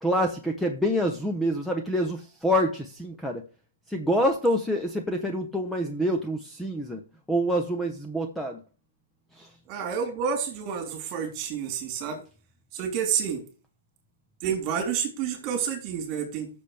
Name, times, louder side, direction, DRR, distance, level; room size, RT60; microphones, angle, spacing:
voice 1, 0.0-3.4 3.9-7.0 7.3-8.6 9.3-9.5, equal, 5° left, 4 dB, 0.8 m, -26 dB
voice 2, 9.7-12.2 12.7-13.4 14.4-16.5, right 7 dB, 30° right, 4 dB, 3.4 m, -29 dB
13.5 x 6.9 x 3.4 m, 0.36 s
hypercardioid pair, 155°, 0 cm